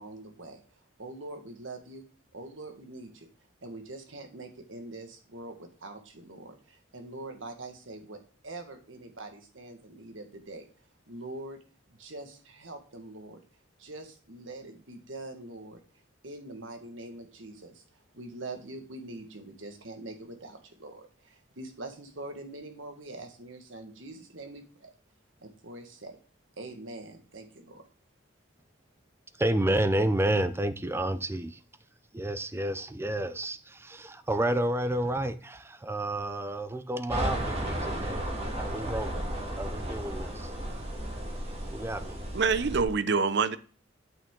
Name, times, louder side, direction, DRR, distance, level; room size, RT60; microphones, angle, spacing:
voice 1, 0.0-2.0 2.3-3.3 3.6-10.7 11.1-11.6 12.0-13.4 13.8-15.8 16.2-24.9 25.4-26.2 26.6-27.8, right 2 dB, 75° right, 1.6 m, -44 dB
voice 2, 29.4-31.6 32.1-38.2 38.6-39.3 39.6-40.5 41.7-42.2, right 1 dB, 10° right, 0.4 m, -30 dB
sound 1, 37.1-42.8, right 1 dB, 30° right, 1.7 m, -34 dB
voice 3, 42.3-43.6, right 5 dB, 60° right, 0.6 m, -25 dB
8.5 x 6.3 x 3.7 m
head